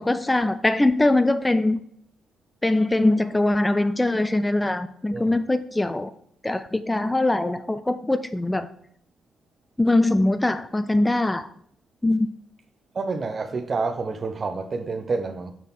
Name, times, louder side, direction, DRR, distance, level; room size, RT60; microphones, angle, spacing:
voice 1, 0.0-1.8 2.6-6.1 6.4-8.7 9.8-11.5 12.0-12.3, left 2 dB, 10° left, 0.3 m, -22 dB
voice 2, 12.9-15.5, right 4 dB, 40° right, 0.8 m, -28 dB
6.3 x 5.4 x 4.2 m
cardioid pair, 90°, 0 cm